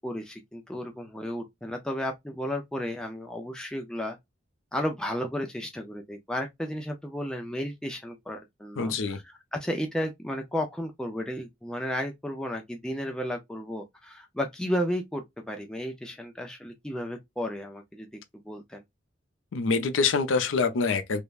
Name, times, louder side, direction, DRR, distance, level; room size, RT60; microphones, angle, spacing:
voice 1, 0.0-4.2 4.7-18.2 18.4-18.8, equal, 5° left, 0.3 m, -33 dB
voice 2, 8.8-9.2 19.5-21.2, left 4 dB, 80° left, 0.5 m, -25 dB
3.3 x 2.1 x 2.3 m
head